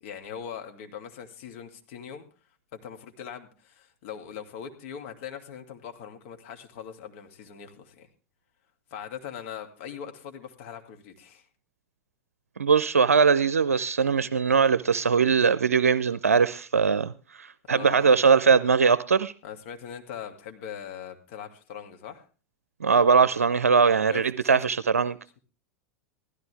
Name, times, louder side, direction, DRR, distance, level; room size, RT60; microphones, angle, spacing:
voice 1, 0.0-2.2 2.7-8.1 8.9-11.5 17.7-18.1 19.4-22.2 24.1-24.6, left 8 dB, 60° left, 2.4 m, -41 dB
voice 2, 12.6-17.1 17.4-19.3 22.8-25.2, right 5 dB, 85° right, 0.5 m, -21 dB
16.0 x 13.5 x 3.5 m
hypercardioid pair, 95°, 8 cm